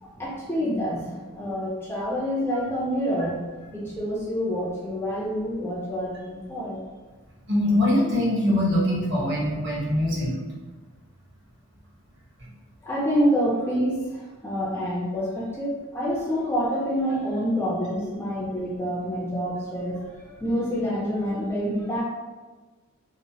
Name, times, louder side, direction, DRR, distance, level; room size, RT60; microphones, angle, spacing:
voice 1, 0.0-3.4 3.7-6.8 12.8-22.0, equal, 10° left, -6 dB, 0.3 m, -27 dB
voice 2, 7.5-10.4, left 1 dB, 55° right, -6 dB, 0.9 m, -23 dB
2.9 x 2.1 x 2.7 m, 1.3 s
head